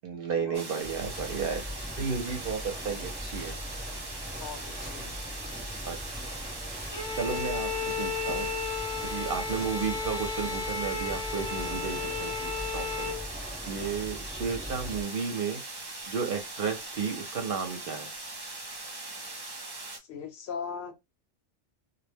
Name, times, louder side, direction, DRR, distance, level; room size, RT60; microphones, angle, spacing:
voice 1, 0.0-1.6 2.0-3.5 5.9-6.0 7.2-7.7 8.0-8.5 9.1-13.1 13.7-15.6 16.1-18.1, right 6 dB, 60° right, 0.7 m, -33 dB
sound 1, 0.5-20.0, right 2 dB, 40° right, 0.3 m, -41 dB
sound 2, 0.8-15.0, equal, 10° right, 0.8 m, -41 dB
voice 2, 4.4-5.2 20.0-20.9, left 6 dB, 65° left, 0.8 m, -39 dB
Bowed string instrument, 6.9-13.3, left 4 dB, 30° left, 0.5 m, -34 dB
2.1 x 2.1 x 3.3 m
omnidirectional pair, 1.2 m